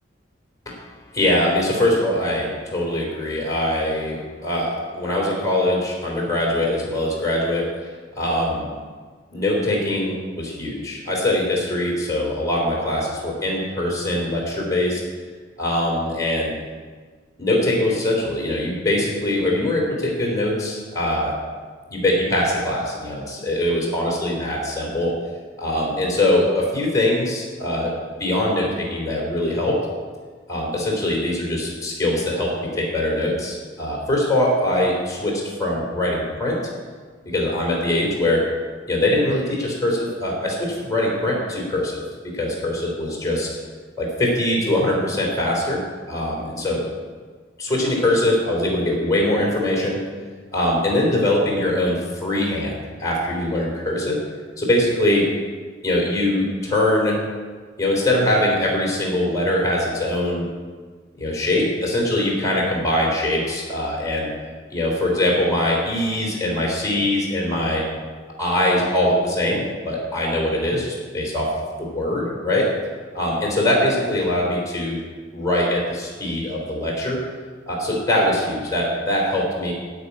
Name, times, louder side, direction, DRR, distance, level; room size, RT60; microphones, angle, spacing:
voice 1, 1.1-7.7 8.2-8.7 9.3-15.0 15.6-16.5 17.4-21.3 21.9-25.1 25.6-27.9 28.2-29.8 30.5-36.6 37.2-38.4 38.9-43.5 44.0-45.8 46.1-46.8 47.6-50.0 50.5-54.2 54.6-55.3 55.8-57.2 57.8-60.4 61.2-64.3 64.7-67.9 68.4-71.5 71.8-72.7 73.1-75.0 75.3-77.2 77.7-79.7, left 1 dB, 20° left, -2 dB, 3.3 m, -22 dB
12.5 x 6.1 x 9.5 m, 1.5 s
head